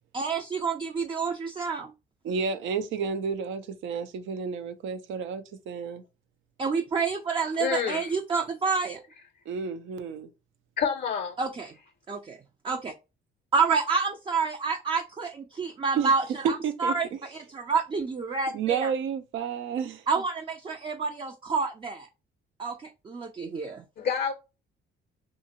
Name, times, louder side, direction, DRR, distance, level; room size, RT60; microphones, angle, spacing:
voice 1, 0.1-1.9 6.6-9.0 11.4-11.7 12.1-12.4 12.6-12.9 13.5-18.9 20.1-22.1 22.6-23.8, right 5 dB, 25° right, 0.4 m, -28 dB
voice 2, 2.2-6.0 9.5-10.3 16.0-16.1 16.6-16.9 18.5-20.0, right 6 dB, 80° right, 0.5 m, -31 dB
voice 3, 7.6-8.1 10.8-11.3 24.0-24.3, left 7 dB, 55° left, 0.5 m, -28 dB
2.7 x 2.5 x 2.8 m
cardioid pair, 90°, 20 cm